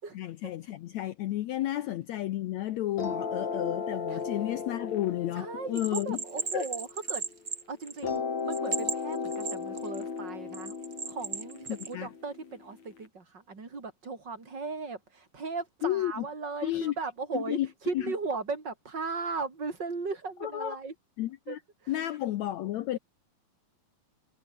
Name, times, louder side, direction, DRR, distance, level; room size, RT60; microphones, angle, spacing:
voice 1, 0.1-6.2 6.5-6.7 11.7-12.1 15.8-16.2 16.6-16.9 17.3-17.7 17.9-18.1 20.4-20.8 21.2-21.6 21.9-23.0, left 14 dB, 80° left, 1.6 m, -32 dB
sound 1, 3.0-7.4 8.0-13.0, left 5 dB, 50° left, 5.0 m, -36 dB
voice 2, 5.3-7.2 7.7-10.7 11.1-20.9 21.5-21.6 21.8-22.2, right 4 dB, 30° right, 4.2 m, -37 dB
Bell, 5.8-8.2 8.5-10.0 10.5-11.9, right 6 dB, 55° right, 1.0 m, -35 dB
omnidirectional pair, 4.2 m